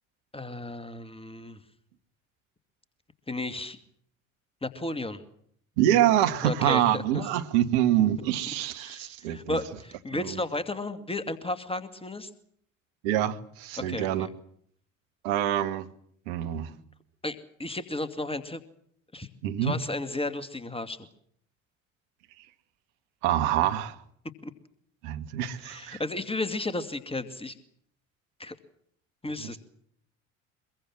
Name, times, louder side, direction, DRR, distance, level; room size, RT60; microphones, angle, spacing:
voice 1, 0.3-1.6 3.3-3.8 4.6-5.2 6.4-7.3 8.7-12.3 13.8-14.3 17.2-18.6 19.1-19.3 19.6-21.1 24.4-24.5 25.6-27.6 28.4-28.6 29.2-29.6, left 2 dB, 15° left, 2.4 m, -33 dB
voice 2, 5.8-9.6 10.1-10.3 13.0-14.3 15.2-15.9 16.3-16.7 19.4-19.7 23.2-24.0 25.0-26.0 29.4-29.5, right 11 dB, 65° right, 2.0 m, -26 dB
24.5 x 22.5 x 7.5 m
figure-of-eight pair, 60°, 39 cm